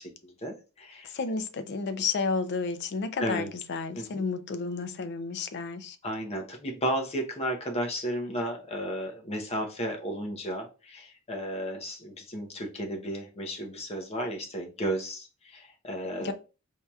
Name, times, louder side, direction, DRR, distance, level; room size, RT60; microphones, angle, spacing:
voice 1, 0.0-1.1 3.2-3.5 3.9-4.2 6.0-16.3, equal, 30° left, 0.8 m, -33 dB
voice 2, 1.0-6.0 16.2-16.3, left 4 dB, 55° left, 0.4 m, -31 dB
4.5 x 2.8 x 2.3 m
head